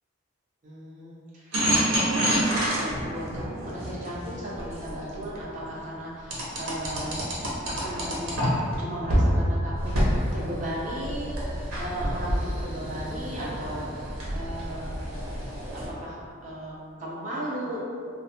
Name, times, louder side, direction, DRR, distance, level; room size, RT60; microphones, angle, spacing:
voice 1, 0.6-7.2 7.7-9.9 10.3-11.3 11.8-15.0 15.7-17.8, right 1 dB, 35° right, -7 dB, 0.6 m, -36 dB
sound 1, 1.5-5.4 6.3-8.8 9.1-9.3 9.8-15.9, equal, 85° right, 0.6 m, -28 dB
2.3 x 2.1 x 2.8 m, 2.3 s
head